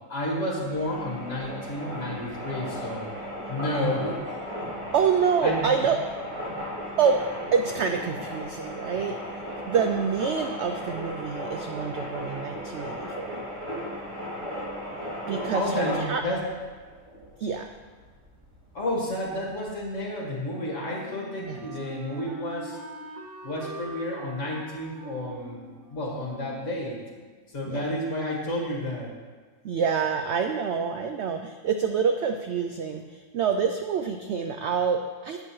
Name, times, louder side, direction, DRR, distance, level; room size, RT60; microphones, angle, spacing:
voice 1, 0.1-3.1 3.5-4.4 5.4-5.6 15.5-16.5 18.7-22.8 23.4-27.0 27.5-29.1, left 1 dB, 50° left, -3 dB, 2.2 m, -31 dB
sound 1, 0.6-20.0, equal, 60° right, 3.7 m, -36 dB
voice 2, 4.9-6.0 7.0-7.2 7.5-13.4 15.3-16.2 17.4-17.7 21.4-21.6 27.6-27.9 29.6-35.4, right 6 dB, 80° right, 6 dB, 0.6 m, -27 dB
Wind instrument woodwind instrument, 20.5-27.3, right 1 dB, 45° right, 1.7 m, -44 dB
10.5 x 8.7 x 3.1 m, 1.4 s
omnidirectional pair, 1.7 m